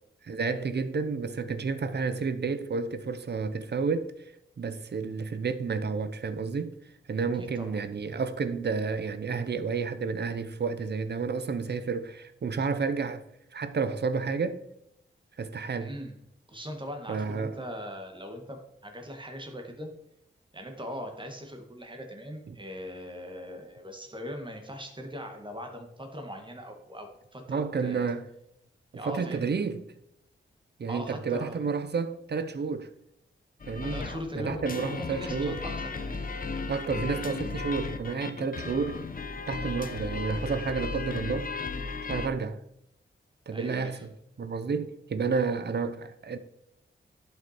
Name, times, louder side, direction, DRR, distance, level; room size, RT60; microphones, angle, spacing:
voice 1, 0.3-4.1 4.6-6.7 7.1-13.2 13.5-14.6 15.4-15.9 17.1-17.5 22.5-22.6 27.5-28.3 29.1-29.8 30.8-32.9 33.7-34.0 34.3-35.6 36.7-39.0 39.5-41.5 42.1-42.6 43.5-44.0 44.4-46.4, right 5 dB, 55° right, 0.9 m, -30 dB
voice 2, 7.4-7.8 15.8-16.1 16.5-19.9 20.5-28.1 28.9-29.5 30.9-31.7 33.8-34.6 34.9-36.3 39.5-39.8 43.5-44.0, equal, 25° right, 1.7 m, -40 dB
sound 1, 33.6-42.3, left 4 dB, 45° left, 0.9 m, -35 dB
11.0 x 5.7 x 4.3 m
wide cardioid pair, 110°, 20 cm